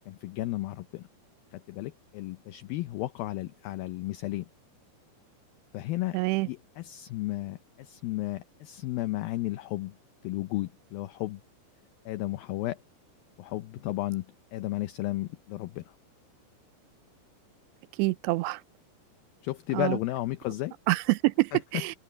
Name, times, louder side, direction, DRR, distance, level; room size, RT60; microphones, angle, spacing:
voice 1, 0.1-1.1 1.5-4.5 5.7-6.2 6.5-10.0 10.2-11.4 12.1-12.8 13.4-14.3 14.5-15.9 19.4-20.7, left 17 dB, 80° left, 2.2 m, -33 dB
voice 2, 6.1-6.5 18.0-18.6 19.7-20.0 20.9-22.0, right 22 dB, 85° right, 2.8 m, -26 dB
open air
omnidirectional pair, 5.0 m